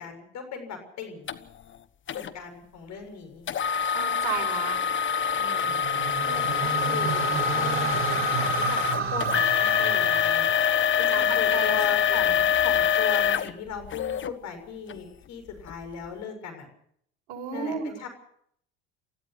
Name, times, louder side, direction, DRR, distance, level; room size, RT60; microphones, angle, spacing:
voice 1, 0.0-1.3 2.1-3.5 5.4-5.8 6.2-7.3 7.5-10.5 11.0-16.7 17.5-18.1, left 6 dB, 55° left, 6 dB, 7.0 m, -38 dB
sound 1, 1.3-1.4 2.1-2.3 3.5-14.3 14.9-15.0 15.6-15.7, left 8 dB, 35° left, 1.3 m, -25 dB
voice 2, 3.8-4.8 11.1-11.8 12.1-12.2 17.3-17.8, right 7 dB, 65° right, 4 dB, 6.5 m, -34 dB
sound 2, 5.5-11.8, right 6 dB, 40° right, 3.5 m, -31 dB
29.0 x 15.5 x 6.2 m, 0.66 s
hypercardioid pair, 70°, 33 cm